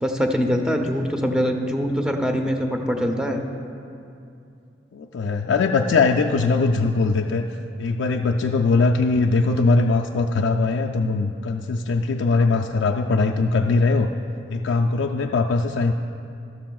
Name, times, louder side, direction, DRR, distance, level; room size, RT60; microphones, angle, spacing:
voice 1, 0.0-3.4, equal, 5° right, 3 dB, 0.6 m, -23 dB
voice 2, 4.9-14.1 14.5-15.9, left 3 dB, 80° left, 3 dB, 0.4 m, -21 dB
13.5 x 12.5 x 2.3 m, 2.6 s
head